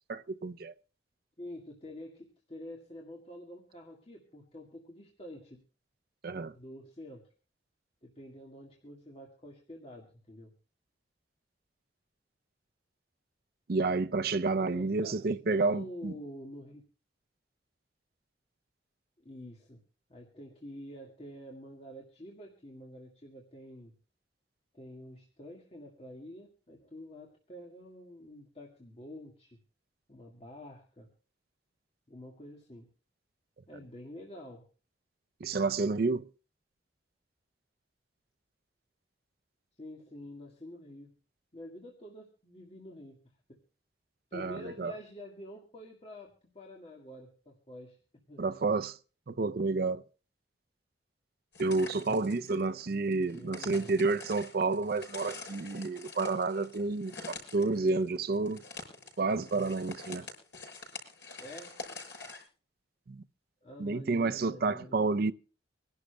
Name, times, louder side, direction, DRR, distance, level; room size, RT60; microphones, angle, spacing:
voice 1, 0.1-0.7 6.2-6.5 13.7-16.1 35.4-36.3 44.3-44.9 48.4-49.0 49.3-50.0 51.6-58.6 59.2-60.3 63.1-63.2 63.8-65.3, right 3 dB, 55° right, 0.5 m, -30 dB
voice 2, 1.4-5.6 6.5-7.2 8.0-10.5 14.3-15.2 15.5-16.8 19.2-19.8 20.1-23.9 24.7-29.6 30.1-31.1 32.1-32.9 33.7-34.6 39.8-41.1 41.5-43.2 43.5-43.6 44.3-48.0 48.3-48.4 51.9-52.2 53.3-54.0 61.4-61.7 63.6-65.0, left 1 dB, 35° left, 1.8 m, -48 dB
sound 1, 51.5-62.4, left 3 dB, 75° left, 6.0 m, -46 dB
25.5 x 11.5 x 2.2 m
head